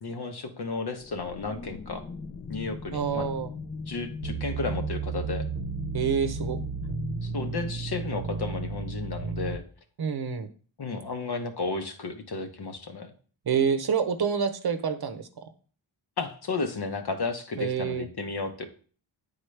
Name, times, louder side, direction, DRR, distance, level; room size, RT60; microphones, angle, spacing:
voice 1, 0.0-2.0 2.5-3.4 3.9-5.4 7.2-9.6 10.8-13.1 16.2-18.7, left 4 dB, 55° left, 6 dB, 1.0 m, -33 dB
sound 1, 1.0-9.2, left 4 dB, 25° left, 0.4 m, -39 dB
voice 2, 2.9-3.5 5.9-6.6 10.0-10.5 13.5-15.4 17.6-18.1, right 7 dB, 55° right, 9 dB, 0.8 m, -27 dB
sound 2, 4.2-9.6, right 6 dB, 85° right, 0.9 m, -33 dB
9.0 x 4.0 x 3.3 m, 0.42 s
wide cardioid pair, 85°, 47 cm